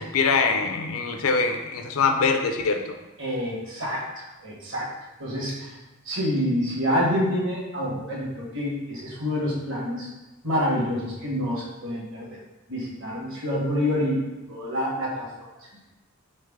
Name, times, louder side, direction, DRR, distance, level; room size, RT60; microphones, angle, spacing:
voice 1, 0.0-2.8, left 4 dB, 70° left, 5 dB, 0.4 m, -23 dB
voice 2, 3.2-4.9 5.2-5.7 6.0-10.1 10.4-12.4 12.7-14.2 14.5-15.3, equal, 55° right, -3 dB, 1.1 m, -27 dB
3.7 x 3.3 x 3.5 m, 1.1 s
head